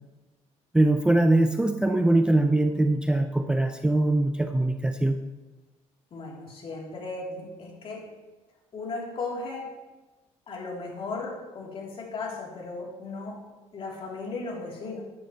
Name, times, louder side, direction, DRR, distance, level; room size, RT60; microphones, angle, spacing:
voice 1, 0.7-5.2, right 1 dB, 5° right, 7 dB, 0.4 m, -22 dB
voice 2, 6.1-8.1 8.7-9.7 10.5-13.4 13.7-15.0, left 3 dB, 45° left, -3 dB, 3.2 m, -36 dB
11.0 x 11.0 x 3.1 m, 1.2 s
cardioid pair, 115°, 13 cm